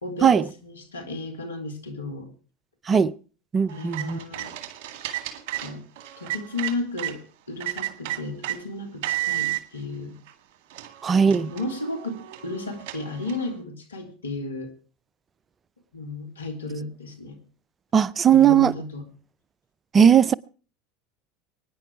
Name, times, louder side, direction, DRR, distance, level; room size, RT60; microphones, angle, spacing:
voice 1, 0.0-2.3 3.7-4.5 5.6-5.8 6.2-7.2 7.5-10.2 11.3-14.7 15.9-17.4 18.3-19.0, left 2 dB, 90° left, 2.8 m, -34 dB
voice 2, 3.5-4.2 11.0-11.5 17.9-18.7 19.9-20.3, right 8 dB, 30° right, 0.6 m, -18 dB
sound 1, 3.7-7.2 7.6-8.6 9.0-9.6 10.3-10.4 10.7-13.5, right 15 dB, 60° right, 1.9 m, -33 dB
24.0 x 10.0 x 4.7 m
hypercardioid pair, 80°, 0 cm